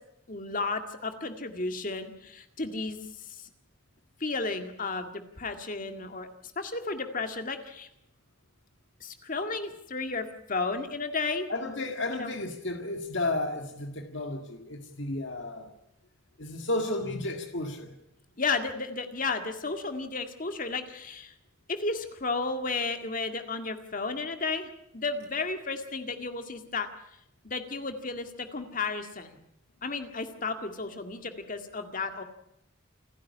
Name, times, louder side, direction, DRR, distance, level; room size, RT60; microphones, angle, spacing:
voice 1, 0.3-3.0 4.2-6.3 6.6-7.9 9.0-11.5 12.1-12.3 18.4-21.3 21.7-26.9 27.4-29.4 29.8-32.2, left 3 dB, 40° left, 2.0 m, -33 dB
voice 2, 11.5-15.7 16.4-17.9, left 2 dB, 60° left, 1.9 m, -33 dB
28.5 x 10.5 x 9.7 m
head